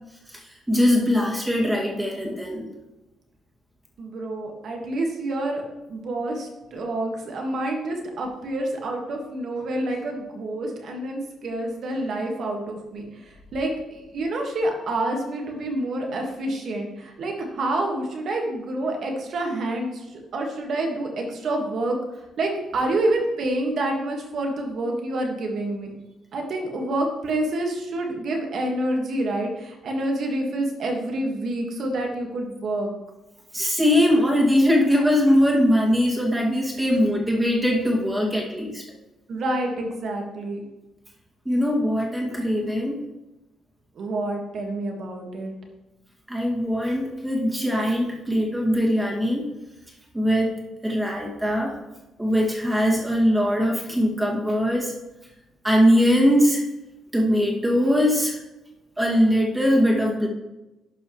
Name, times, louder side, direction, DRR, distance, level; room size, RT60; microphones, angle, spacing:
voice 1, 0.3-2.7 33.5-38.8 41.5-43.0 46.3-49.4 50.1-50.5 50.8-51.7 52.2-54.9 55.6-56.6 57.1-58.4 59.0-60.3, equal, 10° right, -2 dB, 2.2 m, -21 dB
voice 2, 4.0-5.6 5.9-22.0 22.4-25.9 26.3-32.9 39.3-40.6 44.0-45.6, right 1 dB, 60° right, 2 dB, 1.8 m, -28 dB
11.5 x 5.5 x 3.2 m, 1.0 s
cardioid pair, 90°, 0 cm